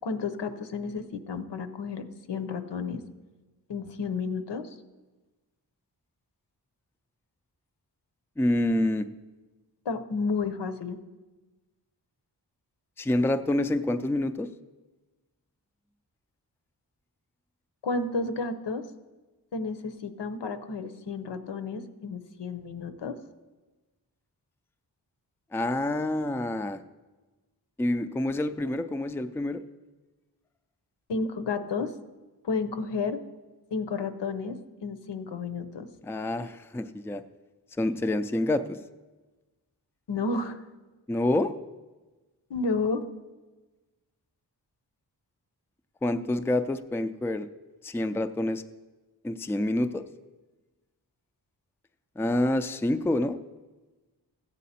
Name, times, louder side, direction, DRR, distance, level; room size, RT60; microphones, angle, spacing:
voice 1, 0.0-3.0 3.7-4.7 9.8-11.0 17.8-18.8 19.5-23.2 31.1-31.9 32.4-33.2 33.7-34.6 34.8-35.9 40.1-40.6 42.5-43.0, left 4 dB, 85° left, 9 dB, 0.9 m, -31 dB
voice 2, 8.4-9.1 13.0-14.5 25.5-26.8 27.8-29.6 36.0-37.2 37.8-38.8 41.1-41.5 46.0-47.5 47.8-48.6 49.2-50.0 52.2-53.4, left 1 dB, 5° left, 9 dB, 0.4 m, -27 dB
15.5 x 8.3 x 4.2 m, 1.2 s
wide cardioid pair, 115°, 41 cm